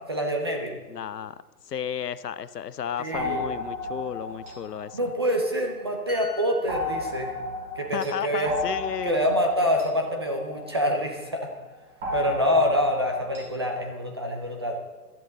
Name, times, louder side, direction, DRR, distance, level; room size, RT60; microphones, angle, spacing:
voice 1, 0.1-0.8 3.0-3.4 4.9-7.3 7.8-8.5 9.0-11.5 12.1-14.8, equal, 15° right, 3 dB, 0.5 m, -26 dB
voice 2, 0.9-5.1 7.9-9.3, left 9 dB, 75° left, 16 dB, 0.8 m, -33 dB
sound 1, 3.1-5.9 6.7-11.2 12.0-13.8, left 2 dB, 45° right, 5.5 m, -34 dB
sound 2, 6.1-9.7 10.0-10.2, left 2 dB, ahead, 1.6 m, -48 dB
17.5 x 12.5 x 3.9 m, 1.3 s
hypercardioid pair, 145°, 48 cm